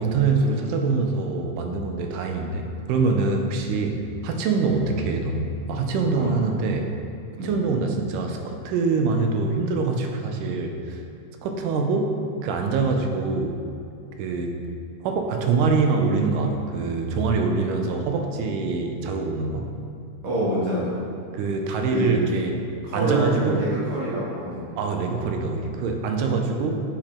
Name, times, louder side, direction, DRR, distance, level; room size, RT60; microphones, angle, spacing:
voice 1, 0.0-6.9 7.4-11.0 11.4-12.1 12.4-13.6 14.2-14.6 15.0-19.7 21.3-23.7 24.8-26.8, right 4 dB, 85° right, 4 dB, 2.2 m, -24 dB
voice 2, 20.2-20.9 21.9-22.2 22.8-24.7, right 1 dB, 60° right, -9 dB, 3.0 m, -26 dB
7.4 x 4.9 x 3.5 m, 2.4 s
omnidirectional pair, 3.7 m